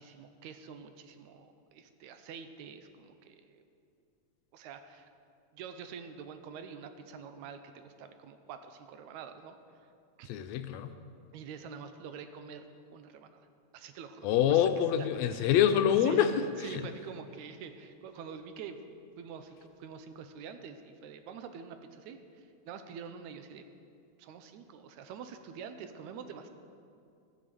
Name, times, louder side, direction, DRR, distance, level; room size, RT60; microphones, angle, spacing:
voice 1, 0.0-3.6 4.5-5.1 5.5-9.6 10.2-10.3 11.3-13.4 13.7-14.7 15.0-15.5 16.0-16.3 16.6-18.8 19.2-23.7 24.2-26.5, right 6 dB, 85° right, 8 dB, 2.1 m, -46 dB
voice 2, 10.3-11.0 14.2-16.8, left 9 dB, 80° left, 9 dB, 1.7 m, -26 dB
14.0 x 7.3 x 6.8 m, 2.5 s
omnidirectional pair, 3.3 m